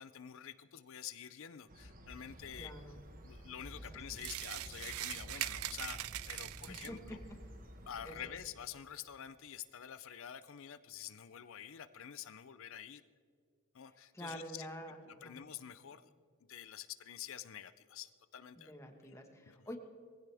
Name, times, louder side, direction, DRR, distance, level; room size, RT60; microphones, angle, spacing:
voice 1, 0.0-2.7 3.2-7.2 7.9-13.0 13.7-14.7 15.1-16.1 16.5-18.7 19.1-19.2 19.5-19.7, left 9 dB, 60° left, 13 dB, 0.5 m, -48 dB
sound 1, 1.7-8.3, equal, 40° right, 1.4 m, -52 dB
voice 2, 2.6-3.0 3.9-4.0 6.7-7.2 8.0-8.3 14.1-15.4 18.6-19.8, equal, 15° left, 4 dB, 1.5 m, -47 dB
sound 2, 4.2-7.1, right 16 dB, 80° right, 0.3 m, -41 dB
20.5 x 16.0 x 3.5 m, 2.1 s
head